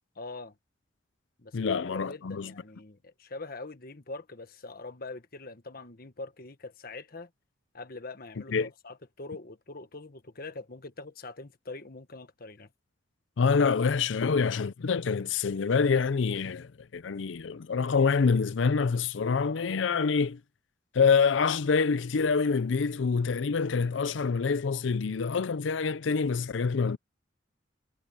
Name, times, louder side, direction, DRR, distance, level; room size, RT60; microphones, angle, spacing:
voice 1, 0.1-0.5 1.4-1.6 1.8-7.3 7.7-12.7, left 3 dB, 50° left, 1.4 m, -43 dB
voice 2, 1.5-2.5 8.5-8.7 13.4-20.4 20.9-27.0, left 5 dB, 80° left, 0.5 m, -26 dB
head